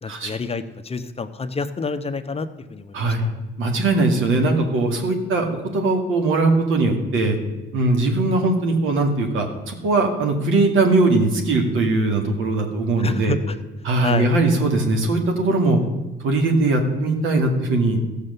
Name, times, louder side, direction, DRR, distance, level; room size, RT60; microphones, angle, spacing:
voice 1, 0.0-3.3 13.0-13.5 14.0-14.3, left 4 dB, 30° left, 9 dB, 0.8 m, -28 dB
voice 2, 2.9-3.3 3.6-7.4 7.7-13.4 13.8-15.8 16.2-18.0, right 2 dB, 80° right, 3 dB, 2.2 m, -20 dB
14.5 x 6.6 x 6.7 m, 1.1 s
cardioid pair, 90°, 20 cm